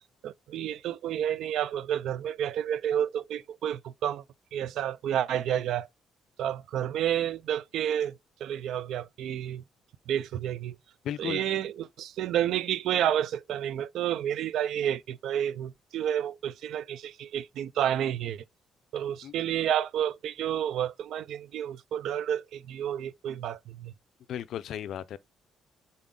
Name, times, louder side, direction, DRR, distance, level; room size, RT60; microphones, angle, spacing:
voice 1, 0.2-4.2 4.5-5.9 6.4-9.6 10.1-10.8 11.2-18.4 18.9-23.9, right 10 dB, 70° right, 0.3 m, -30 dB
voice 2, 11.0-11.4 19.2-19.3 24.3-25.2, left 10 dB, 65° left, 0.3 m, -35 dB
4.0 x 3.7 x 3.5 m
cardioid pair, 140°, 0 cm